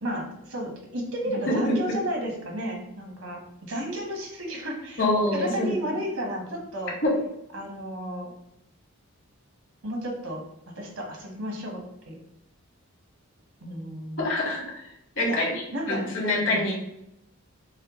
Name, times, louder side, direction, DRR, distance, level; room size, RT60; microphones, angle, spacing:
voice 1, 0.0-5.0 5.3-6.9 7.5-8.3 9.8-10.4 10.7-11.8 12.0-12.1 13.6-14.3 15.2-15.4 15.7-16.1 16.4-16.6, equal, 70° right, 1 dB, 1.3 m, -32 dB
voice 2, 1.3-1.6 5.0-5.7 7.0-7.2 14.2-14.9 15.1-16.7, left 2 dB, 60° left, -3 dB, 1.6 m, -26 dB
6.3 x 2.3 x 3.6 m, 0.82 s
head